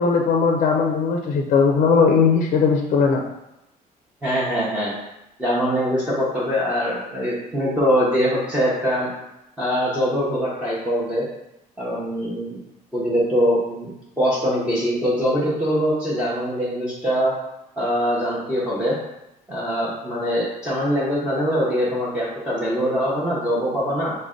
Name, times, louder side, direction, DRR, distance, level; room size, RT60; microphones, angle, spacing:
voice 1, 0.0-3.2, left 5 dB, 50° left, 2 dB, 0.5 m, -18 dB
voice 2, 4.2-4.9 5.4-9.1 9.6-11.2 11.8-12.6 12.9-17.3 17.8-19.0 19.5-24.1, equal, 5° right, -9 dB, 0.7 m, -23 dB
5.1 x 2.1 x 3.6 m, 0.88 s
cardioid pair, 175°, 16 cm